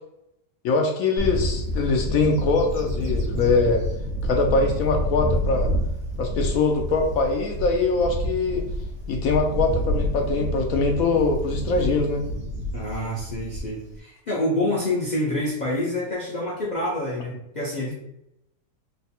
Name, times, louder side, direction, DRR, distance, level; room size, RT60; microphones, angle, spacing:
voice 1, 0.6-3.8 4.3-5.7 6.2-8.7 9.1-12.2, left 3 dB, 70° left, 2 dB, 0.9 m, -22 dB
Bird / Wind, 1.2-13.9, equal, 60° right, 1.1 m, -28 dB
voice 2, 12.7-17.9, left 1 dB, 90° left, -5 dB, 0.4 m, -27 dB
3.3 x 2.1 x 4.1 m, 0.82 s
omnidirectional pair, 1.7 m